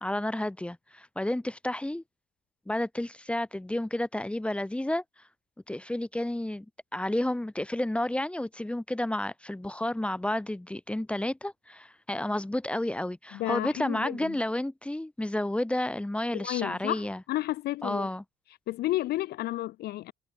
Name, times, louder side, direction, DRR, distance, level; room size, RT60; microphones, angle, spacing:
voice 1, 0.0-2.0 2.7-5.0 5.7-6.7 6.9-17.2 17.8-18.2, left 1 dB, 5° left, 2.3 m, -31 dB
voice 2, 13.3-14.4 16.3-18.1 18.7-20.1, left 15 dB, 70° left, 0.8 m, -32 dB
cardioid pair, 110°, 17 cm